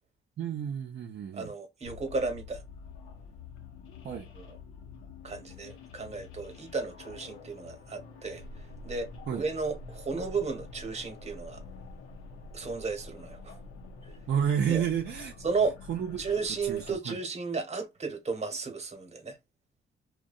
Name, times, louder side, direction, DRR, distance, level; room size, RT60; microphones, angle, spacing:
voice 1, 0.4-1.5 4.0-4.3 9.3-9.4 14.3-15.3 15.9-16.2 16.6-17.2, right 8 dB, 55° right, 0.5 m, -30 dB
voice 2, 1.3-2.6 4.3-4.6 5.2-8.4 8.8-11.6 12.5-13.5 14.7-14.8 15.4-15.8 16.2-19.4, right 4 dB, 35° right, 1.0 m, -33 dB
sound 1, 1.8-17.0, left 3 dB, 90° left, 0.6 m, -47 dB
2.6 x 2.2 x 2.3 m
cardioid pair, 90°, 20 cm